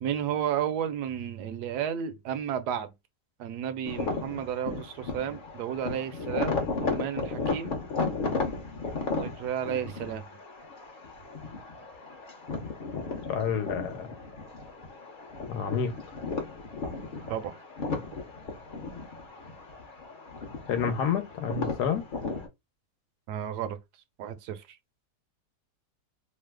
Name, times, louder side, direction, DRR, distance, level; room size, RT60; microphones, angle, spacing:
voice 1, 0.0-2.9 3.4-6.5 6.8-7.8 9.2-10.3 17.3-17.6 23.3-23.8 24.2-24.8, right 9 dB, 75° right, 1.1 m, -32 dB
sound 1, 3.8-22.5, left 4 dB, 45° left, 0.7 m, -35 dB
voice 2, 13.3-14.2 15.5-15.9 20.7-22.0, left 7 dB, 80° left, 1.3 m, -29 dB
3.1 x 2.0 x 3.3 m
omnidirectional pair, 1.8 m